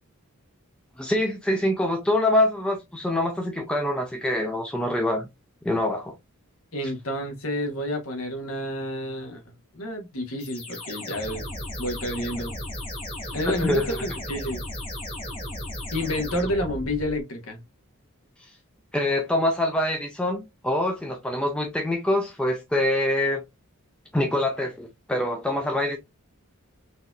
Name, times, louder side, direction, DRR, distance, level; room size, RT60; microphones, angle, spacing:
voice 1, 1.0-5.3 5.6-6.2 6.8-6.9 13.5-14.0 18.4-18.5 18.9-23.4 24.1-26.0, left 1 dB, 5° left, 0.4 m, -25 dB
voice 2, 6.7-11.4 11.8-12.5 13.3-14.6 15.9-17.6, left 1 dB, 75° left, 1.0 m, -30 dB
sound 1, 10.4-17.2, left 1 dB, 25° left, 1.3 m, -35 dB
4.0 x 2.6 x 2.3 m
head